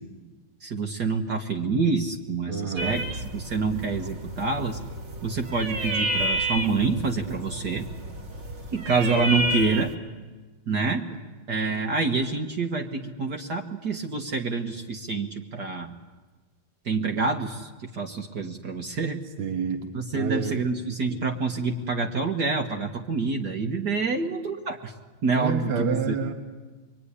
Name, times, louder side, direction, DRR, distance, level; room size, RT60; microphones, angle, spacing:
voice 1, 0.6-4.8 5.2-7.8 8.7-9.9 10.7-11.1 11.5-15.9 16.9-19.2 19.9-24.9 25.2-26.1, right 4 dB, 55° right, 2 dB, 1.9 m, -27 dB
voice 2, 2.5-3.0 19.4-19.8 20.1-20.6 21.1-21.2 25.4-26.3, right 5 dB, 80° right, 4 dB, 2.4 m, -28 dB
sound 1, 2.8-10.0, right 1 dB, 35° right, 2.1 m, -31 dB
25.0 x 23.5 x 10.0 m, 1.3 s
omnidirectional pair, 2.3 m